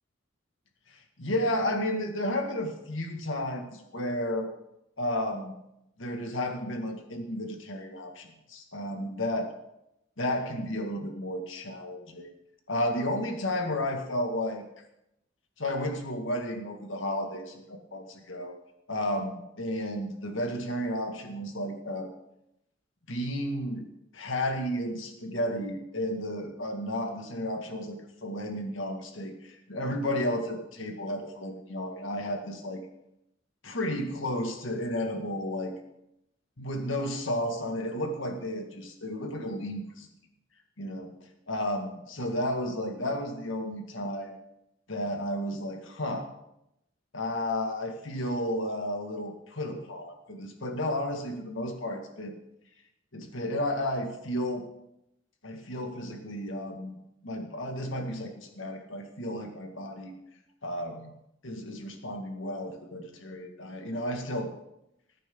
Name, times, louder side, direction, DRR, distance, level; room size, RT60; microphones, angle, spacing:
voice 1, 0.9-4.5 5.0-5.5 6.0-9.5 10.2-12.3 12.7-14.6 15.6-18.5 18.9-22.1 23.1-23.9 24.1-32.8 33.6-35.7 36.6-40.1 40.8-41.1 41.5-44.4 44.9-46.3 47.1-52.4 53.1-54.7 55.4-57.0 57.2-60.1 60.6-61.1 61.4-64.5, left 1 dB, 85° left, 3 dB, 2.1 m, -32 dB
20.5 x 9.1 x 3.9 m, 0.84 s
head